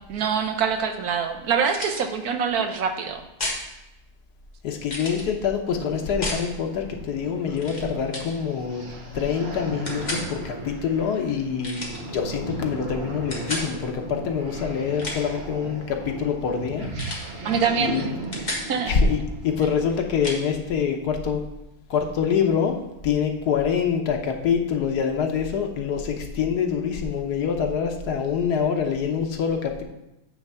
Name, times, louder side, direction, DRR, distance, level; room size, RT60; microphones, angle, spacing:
voice 1, 0.1-3.3 17.4-18.1 18.7-19.0, right 6 dB, 70° right, 6 dB, 1.3 m, -25 dB
sound 1, 1.7-2.0 3.4-3.6 4.9-5.2 6.2-6.5 7.6-7.8 8.1-8.3 9.9-10.3 11.6-12.0 13.3-13.7 14.8-15.4 17.0-17.3 17.6-17.8 18.1-18.7 20.2-20.4, left 1 dB, 30° left, 1.5 m, -31 dB
voice 2, 4.6-8.8 9.1-16.9 17.8-18.1 18.9-19.2 19.4-21.4 21.9-22.8 23.0-29.8, left 6 dB, 85° left, 3 dB, 1.5 m, -25 dB
sound 2, 5.7-20.3, right 2 dB, 45° right, 1.4 m, -37 dB
8.8 x 3.5 x 6.8 m, 0.91 s
omnidirectional pair, 1.7 m